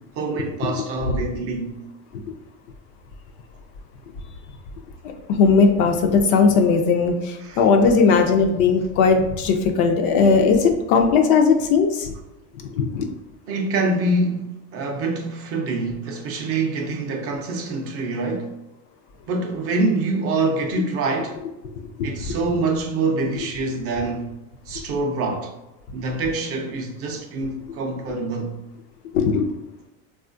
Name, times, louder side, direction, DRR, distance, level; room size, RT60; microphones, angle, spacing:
voice 1, 0.2-1.8 7.4-7.6 13.5-18.5 19.3-21.4 22.0-24.3 24.7-25.5 25.9-28.5, right 3 dB, 35° right, 0.4 m, -25 dB
voice 2, 5.3-12.1 12.7-13.1 22.3-22.4 29.1-29.5, left 5 dB, 50° left, 0.4 m, -18 dB
3.5 x 2.4 x 2.5 m
supercardioid pair, 125°, 41 cm